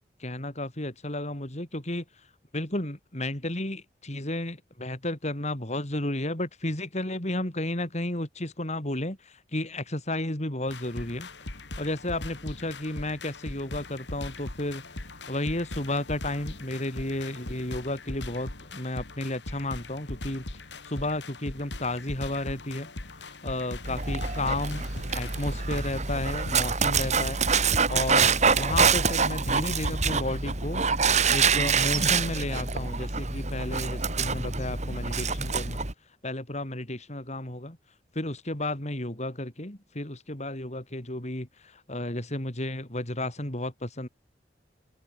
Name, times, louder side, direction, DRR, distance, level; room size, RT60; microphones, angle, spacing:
voice 1, 0.2-2.0 2.5-9.2 9.5-11.3 11.8-14.8 15.3-20.4 20.8-22.9 23.3-24.9 25.1-27.4 27.9-30.8 31.2-35.8 36.2-37.8 38.1-41.5 41.7-44.1, left 1 dB, 40° left, 4.5 m, -32 dB
sound 1, 10.7-29.8, left 1 dB, 85° left, 3.1 m, -40 dB
Dog, 23.8-35.9, right 5 dB, 40° right, 3.4 m, -26 dB
open air
head